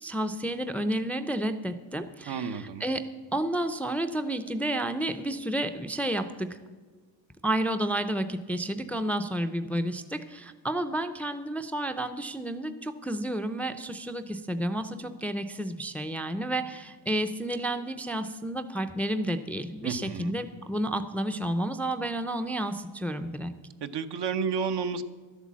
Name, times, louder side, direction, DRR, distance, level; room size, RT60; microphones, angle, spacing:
voice 1, 0.0-3.1 3.3-6.6 7.4-23.5, right 1 dB, 5° left, 9 dB, 0.4 m, -31 dB
voice 2, 2.3-2.8 19.8-20.3 23.8-25.0, right 6 dB, 65° right, 10 dB, 0.9 m, -31 dB
12.0 x 8.3 x 7.3 m, 1.5 s
cardioid pair, 125°, 44 cm